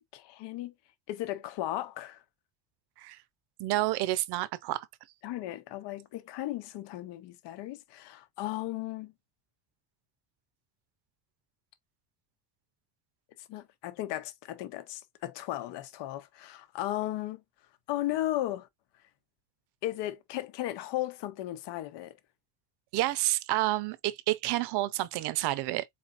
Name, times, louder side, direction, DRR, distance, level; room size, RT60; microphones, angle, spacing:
voice 1, 0.1-0.7 1.1-2.2 5.2-9.1 13.5-17.4 17.9-18.7 19.8-22.2, left 14 dB, 60° left, 1.0 m, -35 dB
voice 2, 3.6-4.9 22.9-25.9, right 16 dB, 55° right, 0.7 m, -29 dB
4.3 x 3.9 x 2.5 m
cardioid pair, 120°, 47 cm